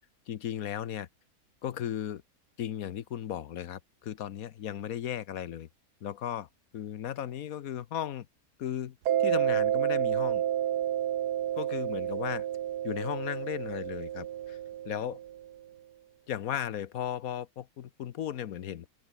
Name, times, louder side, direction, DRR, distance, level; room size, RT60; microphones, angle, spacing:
voice 1, 0.3-1.1 1.6-2.2 2.6-5.7 6.0-6.5 6.7-8.3 8.6-10.4 11.6-12.5 12.8-14.6 14.8-15.2 16.3-18.9, left 10 dB, 65° left, 1.2 m, -36 dB
Mallet percussion, 9.1-15.4, right 11 dB, 85° right, 1.5 m, -30 dB
omnidirectional pair, 1.7 m